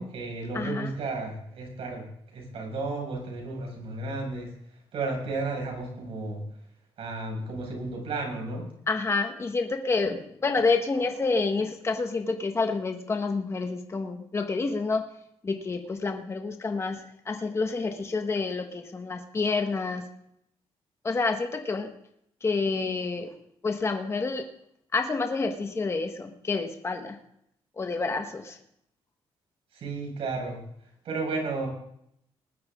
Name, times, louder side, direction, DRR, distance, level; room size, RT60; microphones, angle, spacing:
voice 1, 0.0-2.0 2.3-4.5 4.9-6.4 7.0-8.7 29.7-30.6 31.0-31.7, right 3 dB, 70° right, 1 dB, 6.0 m, -33 dB
voice 2, 0.5-0.9 8.9-15.0 15.4-17.0 17.2-20.1 21.0-21.9 22.4-23.3 23.6-24.5 24.9-27.2 27.8-28.6, left 4 dB, 25° left, 5 dB, 1.4 m, -28 dB
19.5 x 12.5 x 3.7 m, 0.72 s
cardioid pair, 125°, 10 cm